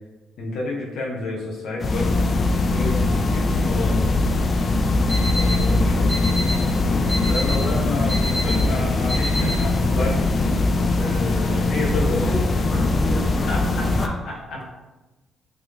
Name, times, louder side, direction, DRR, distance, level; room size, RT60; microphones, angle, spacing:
voice 1, 0.4-2.3 2.7-4.1 5.3-6.2 7.3-10.2 10.7-12.3 13.5-14.6, left 2 dB, 75° left, -3 dB, 0.7 m, -29 dB
sound 1, 1.8-14.1, left 2 dB, 45° left, 0.3 m, -21 dB
Alarm, 4.8-9.9, left 1 dB, ahead, 1.0 m, -31 dB
voice 2, 12.2-14.6, left 1 dB, 20° left, -4 dB, 1.1 m, -32 dB
3.8 x 2.3 x 3.2 m, 1.1 s
cardioid pair, 90°, 0 cm